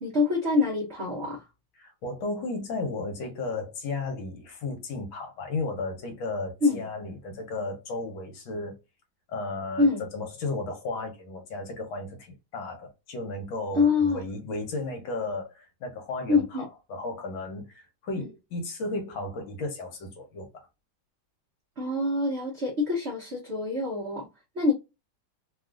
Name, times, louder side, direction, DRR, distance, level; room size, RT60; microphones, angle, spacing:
voice 1, 0.0-1.4 6.6-6.8 9.8-10.1 13.7-14.2 16.3-16.7 21.8-24.3 24.5-24.7, left 3 dB, 65° right, 0.6 m, -25 dB
voice 2, 1.8-8.8 9.3-20.7, left 2 dB, 75° left, 1.5 m, -34 dB
3.4 x 2.4 x 2.3 m
omnidirectional pair, 2.3 m